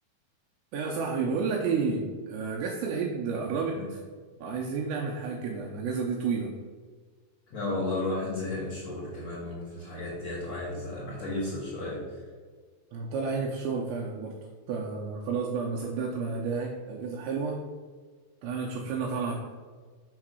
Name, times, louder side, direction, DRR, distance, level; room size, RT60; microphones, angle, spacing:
voice 1, 0.7-4.0 4.4-6.5 12.9-14.4 14.7-17.6 18.4-19.4, right 5 dB, 90° right, -1 dB, 2.6 m, -31 dB
voice 2, 7.5-12.2, left 2 dB, 50° left, -9 dB, 2.1 m, -33 dB
7.5 x 3.7 x 6.2 m, 1.5 s
omnidirectional pair, 5.8 m